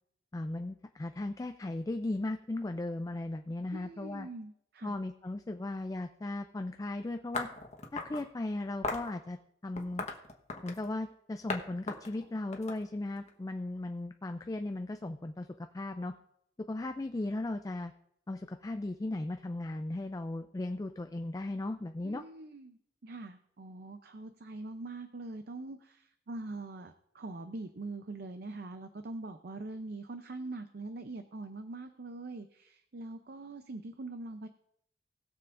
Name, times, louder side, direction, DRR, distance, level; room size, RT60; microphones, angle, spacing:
voice 1, 0.3-4.3 4.8-7.5 7.9-9.4 9.6-10.0 10.6-16.1 16.7-17.9 18.3-22.2, left 2 dB, 20° left, 6 dB, 0.3 m, -37 dB
voice 2, 3.7-5.0 22.0-34.5, right 2 dB, 60° right, 8 dB, 0.6 m, -43 dB
sound 1, 7.3-8.2 8.8-9.1 9.8-10.9 11.5-11.6 11.9-13.3, left 3 dB, 40° left, 1.1 m, -37 dB
20.0 x 6.9 x 2.5 m, 0.73 s
head